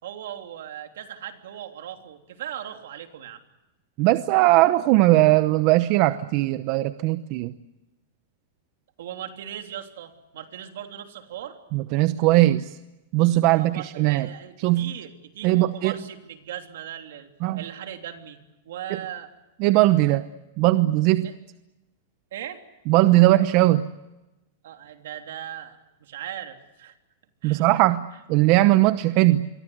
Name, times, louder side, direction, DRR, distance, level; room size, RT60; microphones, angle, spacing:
voice 1, 0.0-3.4 9.0-11.6 13.5-17.3 17.5-18.4 18.6-19.3 21.2-21.3 22.3-22.6 24.6-27.0 27.4-27.7, right 10 dB, 75° right, 5 dB, 3.3 m, -38 dB
voice 2, 4.0-7.5 11.7-12.7 13.1-14.3 14.6-14.9 15.4-16.0 17.4-17.6 18.9-19.0 19.6-20.3 20.6-21.3 22.9-23.9 27.4-29.5, right 17 dB, 45° right, 12 dB, 0.9 m, -19 dB
27.5 x 23.0 x 8.1 m, 1.0 s
supercardioid pair, 145°, 0 cm